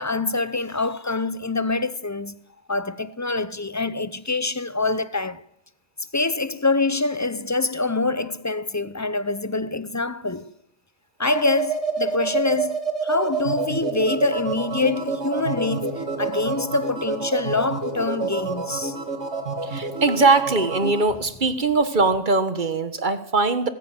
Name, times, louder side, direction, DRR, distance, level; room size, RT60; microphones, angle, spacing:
voice 1, 0.0-2.4 2.7-5.4 6.1-10.5 11.2-19.0, left 3 dB, 20° left, 0.5 m, -25 dB
sound 1, 11.2-21.0, right 4 dB, 60° right, 2.4 m, -28 dB
voice 2, 19.7-23.7, right 3 dB, 40° right, 1.6 m, -21 dB
20.0 x 14.5 x 9.2 m
omnidirectional pair, 1.3 m